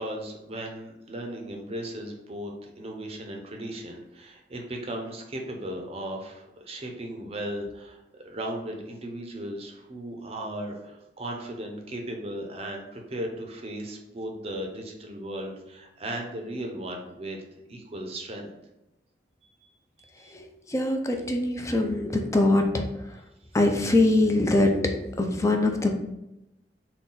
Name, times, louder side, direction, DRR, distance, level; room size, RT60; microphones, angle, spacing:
voice 1, 0.0-2.5 2.8-17.4 17.7-18.5 20.0-20.3, right 1 dB, 35° right, 1 dB, 0.6 m, -36 dB
voice 2, 20.3-23.2 23.5-26.0, left 2 dB, 15° left, 4 dB, 0.4 m, -23 dB
3.8 x 2.2 x 3.8 m, 0.90 s
head